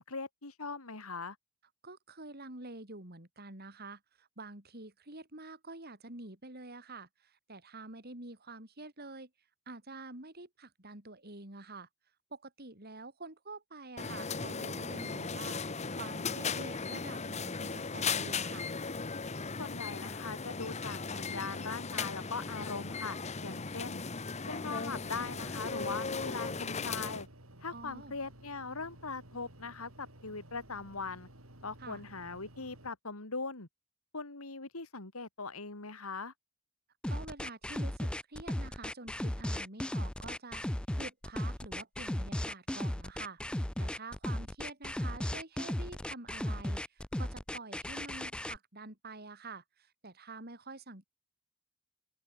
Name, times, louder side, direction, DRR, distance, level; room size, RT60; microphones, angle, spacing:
voice 1, 0.0-1.4 19.6-24.0 24.5-27.3 27.6-31.3 31.6-33.7 34.1-36.3, left 4 dB, 90° left, 2.8 m, -40 dB
voice 2, 1.8-9.3 9.7-11.9 12.3-18.7 27.7-28.1 31.8-32.0 37.1-40.6 41.0-51.0, right 3 dB, 45° right, 4.9 m, -47 dB
sound 1, 14.0-27.2, left 4 dB, 30° left, 1.1 m, -37 dB
sound 2, 24.9-32.9, right 1 dB, 75° right, 6.3 m, -55 dB
sound 3, 37.0-48.6, left 1 dB, 5° left, 0.4 m, -36 dB
open air
head